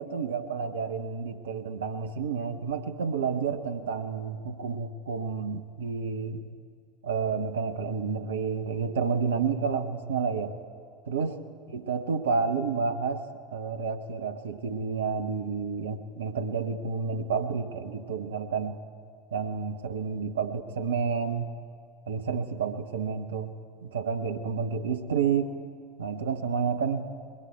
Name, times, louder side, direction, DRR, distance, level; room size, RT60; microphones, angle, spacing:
voice 1, 0.0-6.5 7.0-10.6 11.1-11.4 11.7-13.3 13.5-18.8 19.3-21.5 22.1-23.5 23.8-25.6 26.0-27.1, right 5 dB, 70° right, 10 dB, 1.0 m, -30 dB
27.0 x 21.5 x 4.5 m, 2.2 s
figure-of-eight pair, 75°, 0 cm